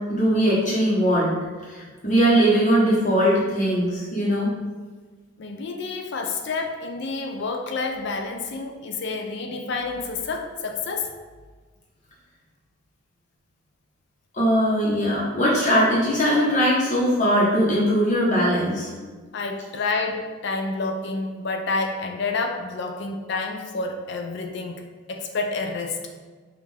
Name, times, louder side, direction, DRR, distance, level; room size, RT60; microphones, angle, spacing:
voice 1, 0.1-1.3 1.7-4.5 14.3-18.9, equal, 35° left, -7 dB, 1.0 m, -20 dB
voice 2, 5.4-11.1 19.3-24.8 25.1-26.0, left 3 dB, 55° left, 3 dB, 0.4 m, -29 dB
5.4 x 2.5 x 3.3 m, 1.4 s
head